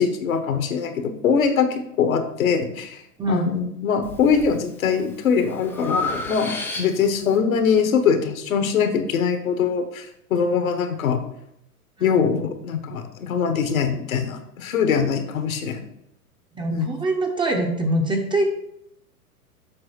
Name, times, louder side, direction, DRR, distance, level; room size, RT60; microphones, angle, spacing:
voice 1, 0.0-3.0 3.3-11.2 12.0-15.8 16.7-16.9, left 6 dB, 65° left, 8 dB, 1.3 m, -22 dB
voice 2, 3.2-3.5 12.0-12.3 16.5-18.5, right 1 dB, 10° right, 2 dB, 0.7 m, -24 dB
Breathing, 4.0-4.5 5.0-7.2, left 3 dB, 5° left, 0.3 m, -30 dB
7.8 x 5.8 x 4.4 m, 0.77 s
figure-of-eight pair, 105°, 46 cm